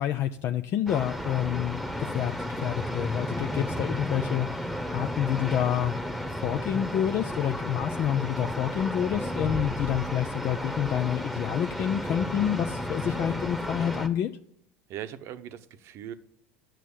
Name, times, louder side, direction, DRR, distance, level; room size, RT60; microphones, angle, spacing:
voice 1, 0.0-6.0 6.4-14.3, left 10 dB, 50° left, 7 dB, 0.5 m, -28 dB
sound 1, 0.9-14.1, equal, ahead, 1.1 m, -33 dB
voice 2, 13.0-13.3 14.9-16.1, right 10 dB, 55° right, 11 dB, 0.9 m, -40 dB
9.1 x 6.3 x 8.4 m, 0.69 s
hypercardioid pair, 80°, 5 cm